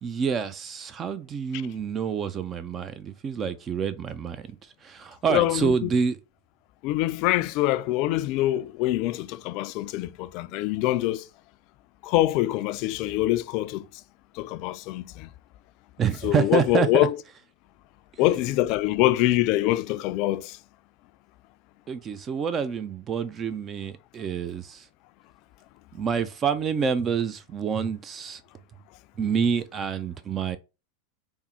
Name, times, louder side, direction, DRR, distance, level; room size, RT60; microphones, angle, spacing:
voice 1, 0.0-4.5 4.8-6.2 16.0-17.1 18.2-18.5 21.9-24.8 25.9-28.4 29.2-30.6, right 6 dB, 30° right, 0.4 m, -27 dB
voice 2, 5.3-5.9 6.8-11.2 12.0-13.8 14.4-15.3 16.2-17.2 18.2-20.6, left 16 dB, 50° left, 0.3 m, -24 dB
3.5 x 2.0 x 4.2 m
hypercardioid pair, 100°, 0 cm